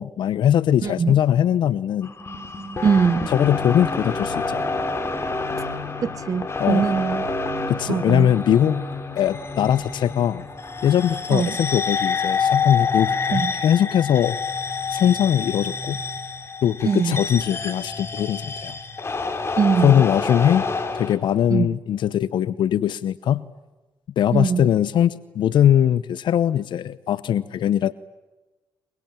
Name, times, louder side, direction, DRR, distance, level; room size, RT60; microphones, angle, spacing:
voice 1, 0.0-2.1 3.3-4.6 6.6-6.8 7.7-8.8 9.1-10.4 10.8-14.4 14.9-16.0 16.6-18.7 19.8-20.6 20.9-23.4 24.2-27.9, left 10 dB, 75° left, 0.8 m, -21 dB
voice 2, 0.8-1.1 2.8-3.3 6.0-7.3 7.9-8.3 11.3-11.6 13.3-13.5 16.8-17.2 19.6-19.9 21.5-21.7 24.3-24.7, right 6 dB, 45° right, 0.9 m, -22 dB
sound 1, 2.0-21.2, left 4 dB, 30° left, 4.0 m, -27 dB
24.0 x 23.5 x 8.9 m
cardioid pair, 80°, 8 cm